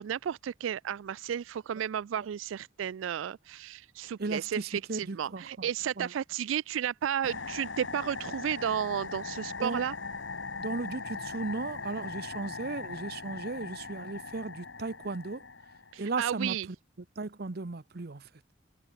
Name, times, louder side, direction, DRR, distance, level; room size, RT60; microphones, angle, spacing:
voice 1, 0.0-9.9 15.9-16.7, right 9 dB, 85° right, 0.3 m, -33 dB
voice 2, 4.2-5.4 6.0-6.1 9.6-9.8 10.6-15.4 16.0-16.6 17.2-18.2, right 3 dB, 55° right, 0.8 m, -36 dB
sound 1, 7.2-16.1, left 4 dB, 75° left, 2.5 m, -40 dB
head